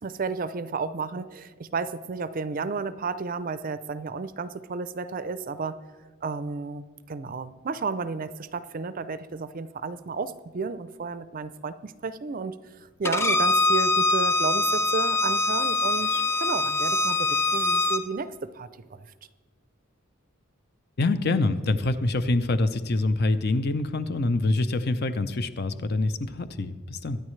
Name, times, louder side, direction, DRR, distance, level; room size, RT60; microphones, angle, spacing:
voice 1, 0.0-5.8 6.2-12.6 13.0-19.0, right 4 dB, 40° right, 13 dB, 0.5 m, -32 dB
Bowed string instrument, 13.0-18.0, left 2 dB, 10° left, 0.4 m, -23 dB
voice 2, 21.0-27.2, left 2 dB, 50° left, 11 dB, 0.7 m, -25 dB
22.5 x 9.8 x 3.2 m, 1.4 s
head